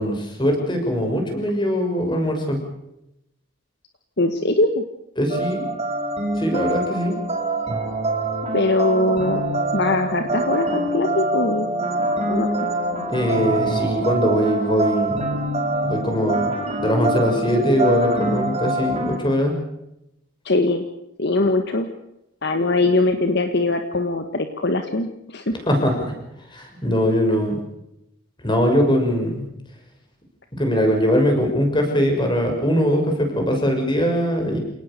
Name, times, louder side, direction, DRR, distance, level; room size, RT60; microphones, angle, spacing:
voice 1, 0.0-2.6 5.2-5.6 6.4-7.1 13.1-15.2 15.8-16.5 16.8-19.5 25.7-26.1 26.5-27.6 28.4-29.5 30.5-34.6, equal, 20° left, 4 dB, 6.3 m, -21 dB
voice 2, 4.2-4.8 8.5-9.4 9.7-11.7 12.3-12.5 20.4-20.8 21.2-21.9 22.4-25.5, left 2 dB, 50° left, 7 dB, 1.6 m, -21 dB
sound 1, 5.3-19.2, right 2 dB, 30° right, 5.9 m, -24 dB
28.5 x 18.5 x 6.8 m, 0.84 s
head